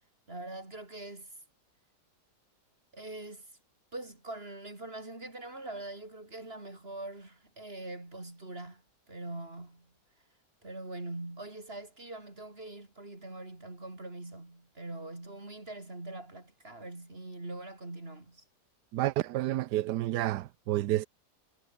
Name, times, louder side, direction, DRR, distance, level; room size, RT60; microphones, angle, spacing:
voice 1, 0.3-1.3 2.9-3.5 3.9-9.9 10.6-18.4, right 2 dB, 35° right, 4.6 m, -43 dB
voice 2, 18.9-21.1, right 15 dB, 80° right, 1.2 m, -30 dB
omnidirectional pair, 1.8 m